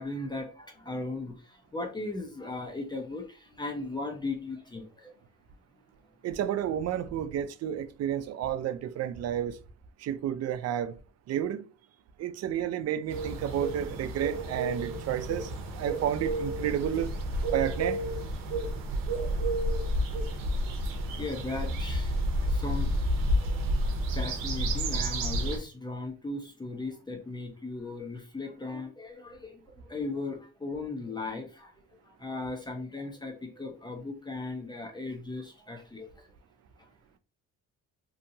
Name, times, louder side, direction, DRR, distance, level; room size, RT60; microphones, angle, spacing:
voice 1, 0.0-1.3 1.7-5.1 21.1-22.9 23.4-23.6 24.1-31.7 32.2-36.1, left 2 dB, 15° left, 0.7 m, -37 dB
voice 2, 6.2-9.6 10.0-10.9 11.3-11.7 12.2-15.5 15.8-17.1 17.5-18.0, right 10 dB, 50° right, 0.4 m, -31 dB
sound 1, 13.1-25.6, right 1 dB, 80° right, 0.7 m, -30 dB
2.7 x 2.5 x 2.7 m
cardioid pair, 85°, 32 cm